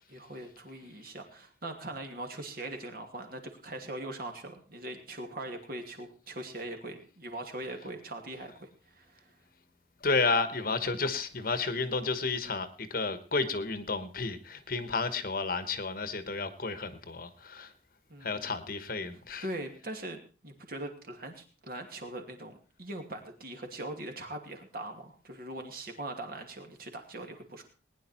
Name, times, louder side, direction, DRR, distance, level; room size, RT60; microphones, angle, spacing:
voice 1, 0.1-9.3 18.1-18.6 19.4-27.6, right 1 dB, 50° right, 4 dB, 2.6 m, -41 dB
voice 2, 10.0-17.7 18.2-19.4, left 4 dB, 50° left, 12 dB, 1.2 m, -31 dB
19.5 x 10.0 x 4.4 m, 0.35 s
head